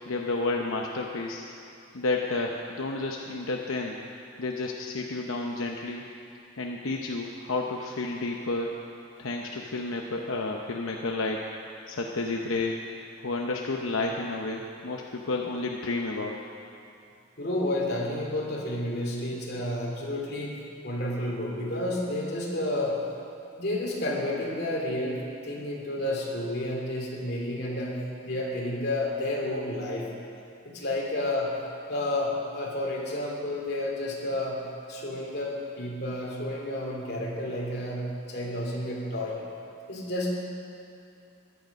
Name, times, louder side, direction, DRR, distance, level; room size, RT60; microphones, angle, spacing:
voice 1, 0.1-1.4 1.9-4.0 4.4-6.0 6.6-8.8 9.2-11.5 11.9-12.8 13.2-16.4, left 3 dB, 85° left, 0 dB, 0.8 m, -31 dB
voice 2, 17.4-20.6 20.8-23.0 23.6-30.1 30.6-31.5 31.9-34.6 34.9-39.4 39.9-40.3, left 1 dB, 50° left, -3 dB, 2.7 m, -31 dB
15.5 x 11.0 x 5.2 m, 2.6 s
head